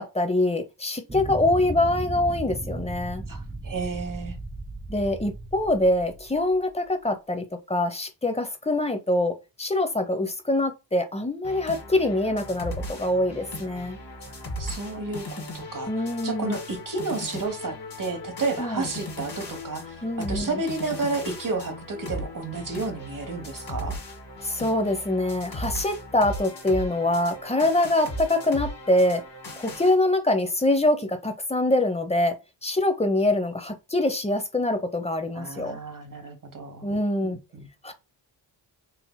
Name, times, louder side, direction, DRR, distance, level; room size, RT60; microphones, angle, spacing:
voice 1, 0.0-3.2 4.9-14.0 15.9-16.6 18.6-18.8 20.0-20.5 24.4-29.2 29.6-32.4 32.6-35.8 36.8-37.4 37.8-37.9, left 1 dB, 15° left, 0.8 m, -24 dB
sound 1, 1.1-6.8, right 2 dB, 10° right, 0.5 m, -36 dB
voice 2, 3.3-4.4 14.6-15.9 16.2-24.0 35.3-36.9 37.2-37.7, right 3 dB, 40° right, 1.3 m, -31 dB
sound 2, 11.4-30.0, left 1 dB, 55° left, 1.7 m, -37 dB
4.2 x 2.7 x 2.3 m
supercardioid pair, 45°, 47 cm